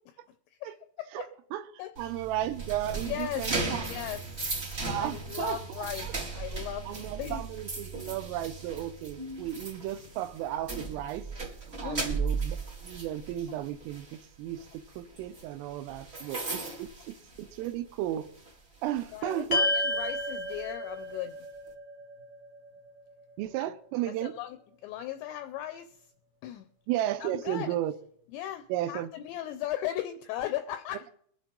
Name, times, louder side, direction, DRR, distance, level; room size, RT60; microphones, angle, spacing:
voice 1, 0.6-1.3 1.8-1.9 3.1-3.5 3.8-4.4 4.9-6.1 6.3-7.4 11.8-12.2 19.1-21.4 23.6-23.7 24.2-24.6 24.8-26.1 26.4-26.6 27.2-27.7 28.3-31.1, left 12 dB, 85° left, 8 dB, 2.6 m, -37 dB
voice 2, 1.1-1.7 2.0-3.8 4.8-6.1 6.9-11.3 11.8-12.6 12.8-18.3 18.8-19.7 23.4-24.3 26.9-27.9 28.7-29.1, right 12 dB, 85° right, 10 dB, 3.4 m, -34 dB
sound 1, 1.9-17.9 18.2-18.5 19.0-20.6, right 3 dB, 55° right, 0.6 m, -37 dB
sound 2, 19.5-24.0, left 1 dB, 60° left, 1.0 m, -32 dB
23.0 x 8.2 x 3.8 m, 0.63 s
omnidirectional pair, 5.8 m